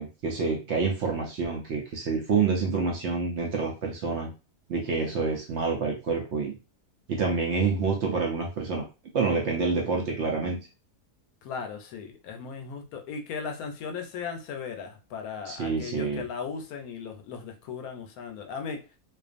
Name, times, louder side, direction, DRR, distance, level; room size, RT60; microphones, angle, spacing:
voice 1, 0.0-4.3 4.7-6.5 7.1-8.8 9.1-10.6 15.5-16.2, right 4 dB, 65° right, 0 dB, 0.7 m, -27 dB
voice 2, 11.4-18.8, left 6 dB, 80° left, 4 dB, 1.0 m, -37 dB
2.4 x 2.4 x 2.4 m, 0.30 s
omnidirectional pair, 1.5 m